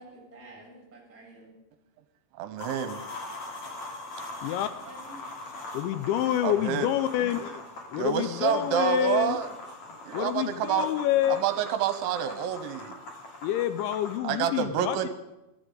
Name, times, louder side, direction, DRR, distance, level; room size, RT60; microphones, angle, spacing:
voice 1, 0.0-1.5 4.5-5.2, right 1 dB, 5° right, -2 dB, 5.7 m, -50 dB
voice 2, 2.4-3.0 6.4-6.9 8.0-9.5 10.0-10.9 11.4-13.0 14.2-15.1, right 9 dB, 80° right, 9 dB, 3.1 m, -28 dB
sound 1, 2.6-14.2, left 2 dB, 40° left, 3.6 m, -42 dB
voice 3, 5.7-7.6 7.9-9.4 10.1-11.5 13.4-15.1, left 12 dB, 80° left, 11 dB, 2.8 m, -27 dB
23.0 x 14.5 x 3.9 m, 0.93 s
omnidirectional pair, 5.6 m